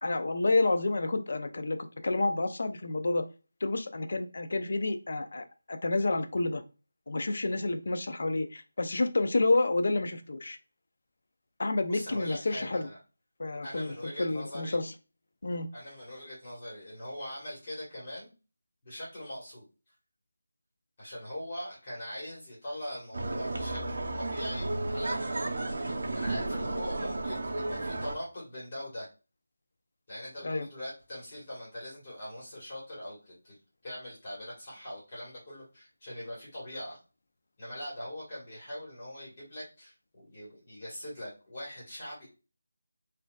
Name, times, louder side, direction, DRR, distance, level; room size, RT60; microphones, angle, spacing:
voice 1, 0.0-3.2 3.6-6.6 7.1-10.6 11.6-12.9 13.4-14.9 15.4-15.7 30.4-30.7, left 2 dB, 55° left, 8 dB, 0.5 m, -29 dB
voice 2, 11.9-13.0 13.6-14.8 15.7-18.3 18.8-19.6 21.0-29.1 30.1-33.6 33.8-37.0 37.6-42.3, left 1 dB, 30° left, -6 dB, 1.5 m, -42 dB
sound 1, 23.1-28.1, right 2 dB, 55° right, 0.6 m, -33 dB
4.2 x 2.6 x 2.3 m, 0.31 s
figure-of-eight pair, 170°, 0 cm